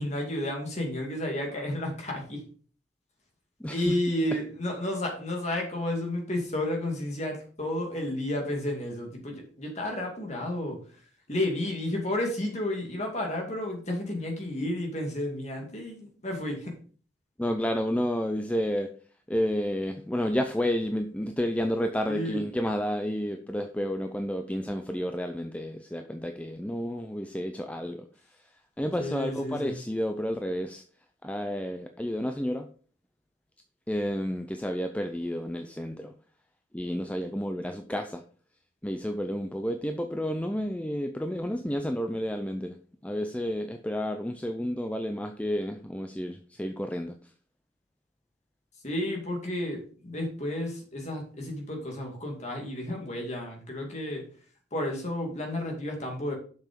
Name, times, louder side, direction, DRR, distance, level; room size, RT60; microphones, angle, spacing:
voice 1, 0.0-2.5 3.7-10.8 11.3-16.8 22.1-22.4 29.0-29.8 48.8-54.3 54.7-56.3, left 1 dB, 35° left, 1 dB, 2.4 m, -32 dB
voice 2, 3.6-4.0 17.4-18.9 19.3-28.0 28.8-30.8 31.2-32.7 33.9-36.1 36.7-38.2 38.8-42.8 43.0-47.1, equal, 5° left, 5 dB, 0.5 m, -31 dB
7.4 x 5.9 x 5.2 m, 0.42 s
head